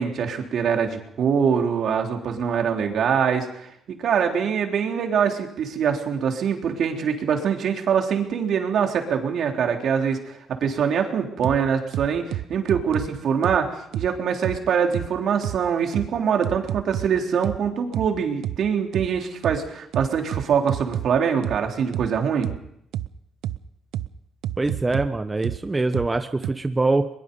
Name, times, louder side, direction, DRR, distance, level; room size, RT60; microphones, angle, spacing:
voice 1, 0.0-22.5, right 7 dB, 65° right, 3 dB, 3.7 m, -24 dB
sound 1, 11.4-11.6 11.9-13.1 13.4-13.6 13.9-14.1 14.4-14.6 14.9-15.1 15.4-15.6 15.9-16.1 16.4-17.1 17.4-17.6 17.9-18.1 18.4-18.6 18.9-19.1 19.4-19.6 19.9-21.1 21.4-21.6 21.9-22.1 22.4-22.6 22.9-23.1 23.4-23.6 23.9-24.1 24.4-25.1 25.4-25.6 25.9-26.1 26.4-26.5, right 13 dB, 85° right, 0.7 m, -28 dB
voice 2, 24.6-27.1, right 3 dB, 20° right, 8 dB, 1.1 m, -23 dB
22.0 x 22.0 x 5.5 m, 0.76 s
cardioid pair, 90°, 0 cm